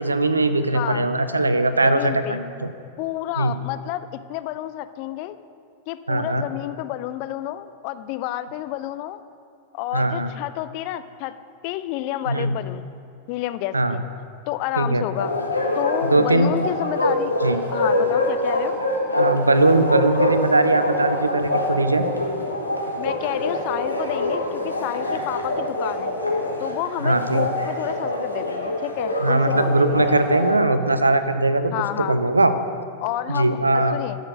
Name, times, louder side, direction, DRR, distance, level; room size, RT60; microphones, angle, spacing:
voice 1, 0.0-2.7 3.4-3.5 6.1-6.4 9.9-10.3 12.3-12.5 13.7-14.0 14.8-15.0 16.1-16.5 17.4-17.6 19.1-22.1 27.0-27.5 29.2-31.7 32.1-32.5 33.3-34.0, right 2 dB, 80° right, 11 dB, 0.5 m, -20 dB
voice 2, 0.7-1.1 1.8-2.4 3.0-5.4 5.9-9.2 9.7-11.4 11.6-12.9 13.3-14.0 14.5-15.3 15.8-17.3 17.7-18.8 23.0-26.1 26.6-30.0 31.7-32.2 33.0-34.2, left 14 dB, 45° left, 12 dB, 0.4 m, -30 dB
Bark, 15.2-30.5, left 1 dB, 85° left, 1.3 m, -25 dB
11.5 x 6.7 x 6.2 m, 2.4 s
figure-of-eight pair, 90°, 0 cm